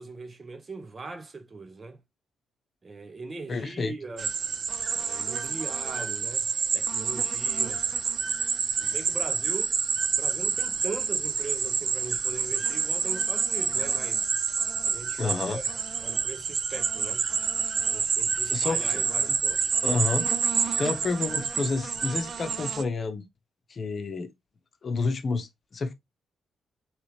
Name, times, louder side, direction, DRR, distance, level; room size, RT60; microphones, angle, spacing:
voice 1, 0.0-2.0 2.8-4.3 4.9-7.8 8.8-9.7 10.1-14.3 14.8-15.7 16.0-17.3 17.8-19.7, right 3 dB, 35° right, 1.1 m, -40 dB
voice 2, 3.5-3.9 8.8-8.9 15.2-15.6 18.5-19.0 19.3-19.4 19.8-20.3 20.8-23.2 23.7-24.3 24.8-25.9, left 4 dB, 50° left, 0.9 m, -29 dB
sound 1, 4.2-22.8, right 6 dB, 55° right, 0.6 m, -28 dB
4.8 x 3.2 x 3.2 m
cardioid pair, 70°, 0 cm